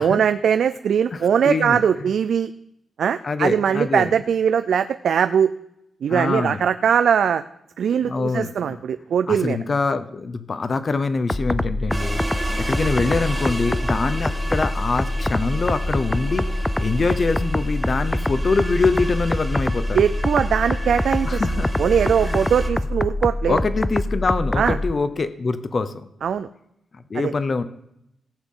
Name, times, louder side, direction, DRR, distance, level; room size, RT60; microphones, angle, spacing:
voice 1, 0.0-2.5 3.0-5.5 6.0-7.4 7.8-9.6 19.9-21.4 21.8-23.6 24.6-24.8 26.2-26.5 27.2-27.3, right 7 dB, 65° right, 11 dB, 0.4 m, -20 dB
voice 2, 1.1-2.1 3.2-4.1 6.1-6.6 8.0-8.8 9.3-20.0 21.2-21.7 22.2-22.5 23.5-26.1 27.1-27.6, left 4 dB, 35° left, 11 dB, 0.8 m, -24 dB
sound 1, 11.3-24.9, left 1 dB, 10° left, 0.3 m, -25 dB
sound 2, 11.9-22.7, right 2 dB, 15° right, 1.2 m, -32 dB
17.5 x 8.1 x 3.8 m, 0.80 s
wide cardioid pair, 150°, 0 cm